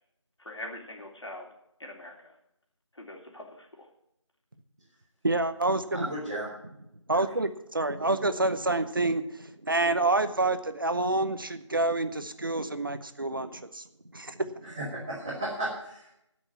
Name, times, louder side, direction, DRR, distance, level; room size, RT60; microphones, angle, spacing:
voice 1, 0.4-1.5 1.8-2.3 2.9-3.9, left 1 dB, 65° left, 1 dB, 3.3 m, -43 dB
voice 2, 5.2-6.1 7.1-13.9 14.1-14.7, right 2 dB, 45° right, 11 dB, 0.9 m, -28 dB
voice 3, 5.9-6.5 7.1-7.2 14.6-16.2, right 1 dB, 10° right, -9 dB, 1.2 m, -35 dB
13.0 x 6.2 x 8.7 m, 0.80 s
figure-of-eight pair, 175°, 16 cm